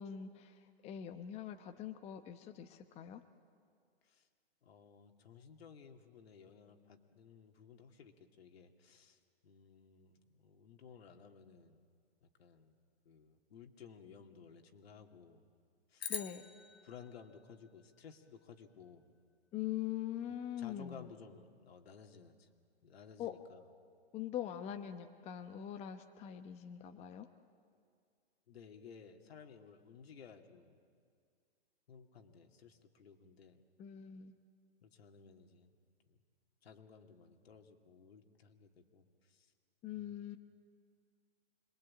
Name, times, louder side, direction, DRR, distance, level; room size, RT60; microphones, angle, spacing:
voice 1, 0.0-3.2 16.1-16.4 19.5-21.1 23.2-23.3 24.1-27.3 33.8-34.4 39.8-40.4, left 10 dB, 20° left, 7 dB, 0.9 m, -43 dB
voice 2, 4.6-11.8 12.2-12.7 13.0-15.4 15.9-16.1 16.8-19.0 20.6-22.5 22.8-23.6 28.5-30.7 31.9-33.6 34.8-35.7 36.1-36.2 36.6-39.5 40.0-40.4, left 6 dB, 75° left, 4 dB, 2.5 m, -57 dB
sound 1, 16.0-18.4, left 6 dB, 90° left, 1.7 m, -46 dB
26.5 x 21.5 x 8.7 m, 2.2 s
hypercardioid pair, 135°, 31 cm